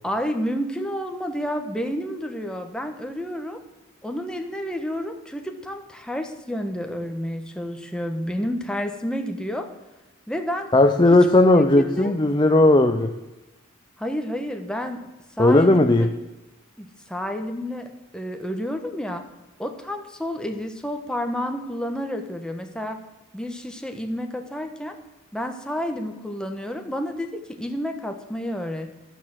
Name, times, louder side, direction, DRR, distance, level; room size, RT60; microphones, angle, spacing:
voice 1, 0.0-3.6 4.0-9.7 10.3-10.7 11.1-11.2 11.5-12.2 14.0-15.0 15.4-16.1 16.8-19.2 19.6-23.0 23.3-25.0 25.3-28.9, equal, 5° left, 5 dB, 1.2 m, -30 dB
voice 2, 10.7-13.1 15.4-16.1, left 2 dB, 20° left, 6 dB, 0.6 m, -16 dB
12.0 x 9.3 x 7.6 m, 1.0 s
head